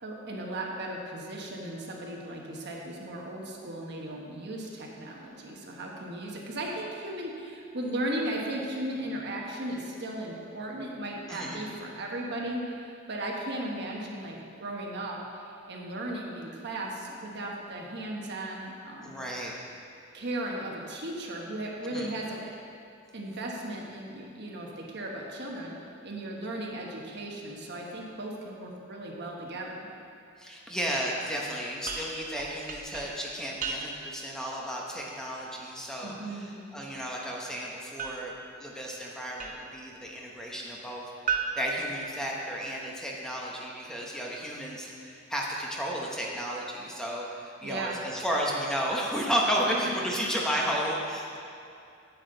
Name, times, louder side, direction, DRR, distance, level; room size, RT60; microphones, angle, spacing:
voice 1, 0.0-19.2 20.1-22.5 23.1-25.7 26.0-29.9 36.0-36.6 47.6-48.0 49.7-49.8 50.2-50.3, right 1 dB, 60° right, -1 dB, 1.2 m, -36 dB
voice 2, 11.3-11.6 19.0-19.5 21.8-22.1 30.4-38.3 38.6-51.4, equal, 5° left, -3 dB, 0.9 m, -33 dB
sound 1, 31.9-34.2 38.0-39.9 41.3-42.7, right 5 dB, 40° right, 0.7 m, -37 dB
9.0 x 8.6 x 3.9 m, 2.5 s
head